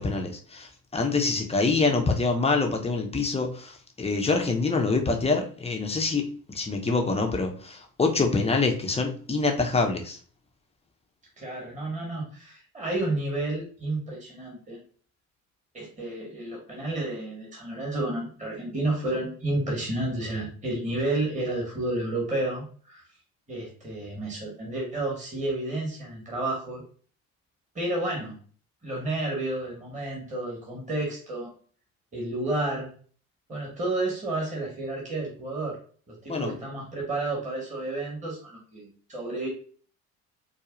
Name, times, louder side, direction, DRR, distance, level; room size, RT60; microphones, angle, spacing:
voice 1, 0.0-10.2 36.3-36.6, left 3 dB, 15° left, 3 dB, 0.7 m, -26 dB
voice 2, 11.4-14.8 15.7-23.0 23.5-26.8 27.7-28.4 28.8-31.5 32.1-32.9 33.5-35.7 36.1-39.5, right 2 dB, 15° right, -3 dB, 1.5 m, -31 dB
4.5 x 2.4 x 2.4 m, 0.44 s
hypercardioid pair, 60°, 42 cm